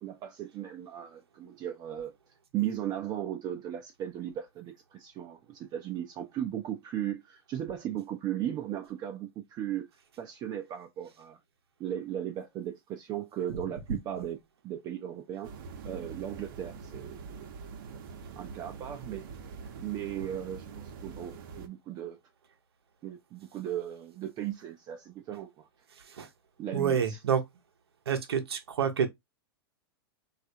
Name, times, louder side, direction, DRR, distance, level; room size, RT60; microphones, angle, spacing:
voice 1, 0.0-2.1 2.5-9.9 10.2-11.4 11.8-14.4 14.6-15.5 15.8-17.5 18.4-19.5 19.8-22.2 23.0-25.7 26.6-27.2, right 11 dB, 30° right, 0.4 m, -36 dB
sound 1, 15.4-21.7, right 5 dB, 60° right, 0.7 m, -44 dB
voice 2, 26.7-27.4 28.1-29.1, right 7 dB, 90° right, 0.7 m, -28 dB
3.1 x 2.4 x 2.7 m
hypercardioid pair, 120°, 13 cm